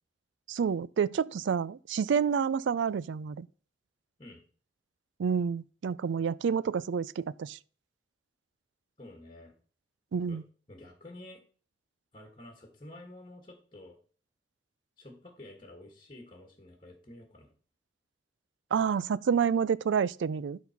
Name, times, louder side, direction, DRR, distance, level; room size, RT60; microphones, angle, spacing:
voice 1, 0.5-3.5 5.2-7.6 10.1-10.4 18.7-20.6, right 6 dB, 80° right, 0.4 m, -29 dB
voice 2, 9.0-9.6 10.3-10.4 10.7-11.4 12.1-14.0 15.0-17.5, left 1 dB, 25° left, 1.6 m, -50 dB
11.5 x 4.1 x 5.7 m
head